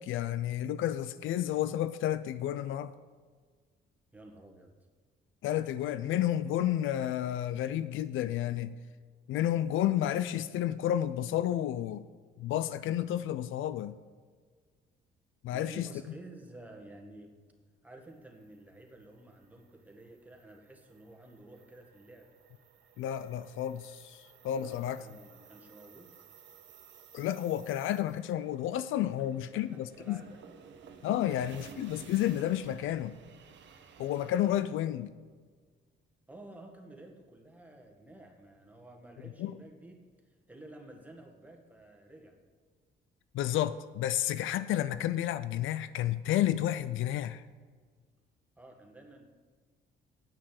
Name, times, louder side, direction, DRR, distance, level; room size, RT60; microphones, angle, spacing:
voice 1, 0.0-2.9 5.4-8.7 9.3-12.0 12.4-13.9 15.4-15.9 23.0-25.0 27.1-30.2 31.0-33.1 34.0-35.1 39.4-39.5 43.3-47.4, left 12 dB, 80° left, 14 dB, 0.5 m, -31 dB
voice 2, 4.1-4.7 15.5-17.3 17.8-22.3 24.5-26.1 29.5-30.4 36.3-42.4 48.6-49.2, right 1 dB, 10° right, 1 dB, 1.8 m, -52 dB
sound 1, 18.2-34.6, right 7 dB, 65° right, 1.0 m, -55 dB
8.9 x 6.1 x 7.7 m, 1.5 s
cardioid pair, 90°, 20 cm